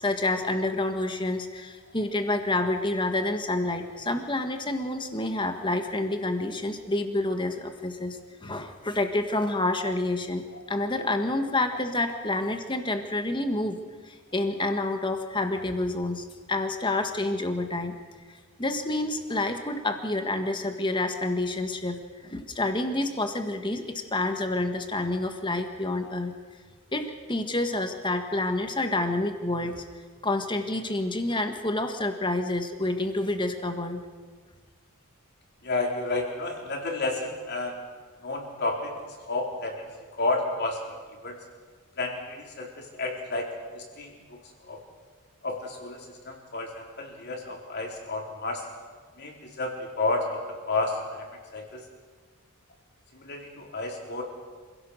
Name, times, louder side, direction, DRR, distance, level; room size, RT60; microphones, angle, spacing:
voice 1, 0.0-10.4 10.7-13.8 14.0-17.9 18.6-22.0 22.2-23.8 24.1-26.3 26.9-29.8 30.2-34.0, left 2 dB, 20° left, 6 dB, 1.7 m, -28 dB
voice 2, 35.6-37.8 38.2-39.0 39.3-39.9 40.2-40.8 41.2-41.4 42.0-44.4 44.7-44.8 45.4-48.7 49.2-51.8 53.1-54.2, left 2 dB, 50° left, 0 dB, 4.2 m, -31 dB
26.5 x 16.5 x 6.6 m, 1.5 s
head